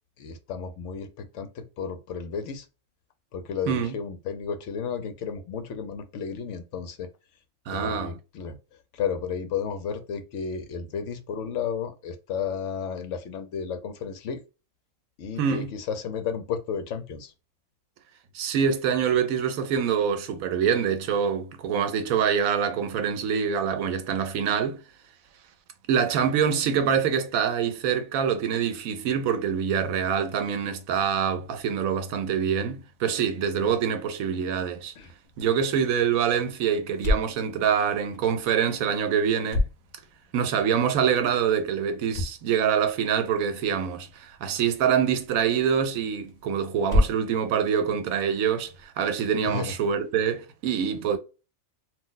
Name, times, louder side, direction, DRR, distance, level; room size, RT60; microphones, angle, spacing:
voice 1, 0.2-2.7 3.3-7.1 7.7-8.6 8.9-14.4 15.2-17.3 35.0-35.1 49.4-49.7, left 6 dB, 70° left, 0.8 m, -33 dB
voice 2, 7.7-8.2 15.4-15.7 18.3-24.8 25.9-34.9 35.4-39.6 40.3-51.2, right 7 dB, 90° right, 1.0 m, -25 dB
sound 1, 35.2-48.8, left 1 dB, 50° left, 0.5 m, -33 dB
2.5 x 2.1 x 3.8 m
omnidirectional pair, 1.4 m